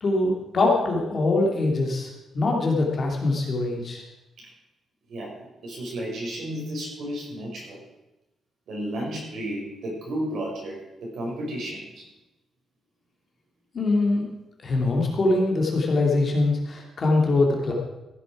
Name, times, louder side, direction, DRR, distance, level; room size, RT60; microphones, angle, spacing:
voice 1, 0.0-4.0 13.7-14.3 14.6-17.7, left 2 dB, 35° left, -1 dB, 2.5 m, -23 dB
voice 2, 5.1-7.8 8.7-12.0, right 1 dB, 60° right, -2 dB, 5.3 m, -33 dB
15.5 x 9.8 x 4.9 m, 0.97 s
wide cardioid pair, 170°, 0 cm